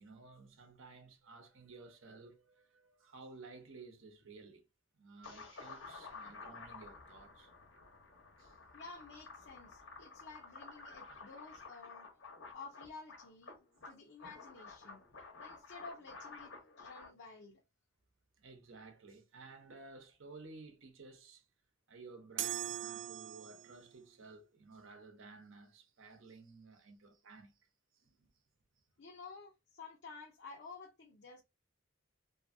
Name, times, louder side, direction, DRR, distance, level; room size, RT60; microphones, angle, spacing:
voice 1, 0.0-4.7 5.0-7.5 8.4-8.6 13.9-14.1 18.4-21.4 21.9-27.7 27.9-28.3, right 3 dB, 80° right, 0.8 m, -55 dB
sound 1, 5.2-17.1, left 4 dB, 80° left, 1.0 m, -52 dB
voice 2, 8.7-12.1 12.5-13.6 13.8-15.0 15.4-17.6 29.0-31.4, left 4 dB, 60° left, 0.5 m, -52 dB
sound 2, 22.4-23.9, right 13 dB, 65° right, 0.4 m, -40 dB
2.7 x 2.6 x 2.5 m
head